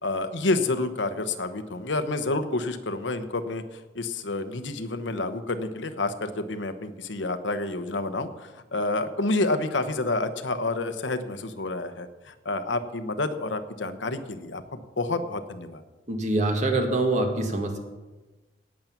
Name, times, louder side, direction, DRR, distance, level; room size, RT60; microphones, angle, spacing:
voice 1, 0.0-15.8, left 2 dB, 90° left, 10 dB, 1.1 m, -29 dB
voice 2, 16.1-17.8, right 2 dB, 40° right, 4 dB, 1.9 m, -25 dB
18.0 x 7.6 x 5.9 m, 1.2 s
head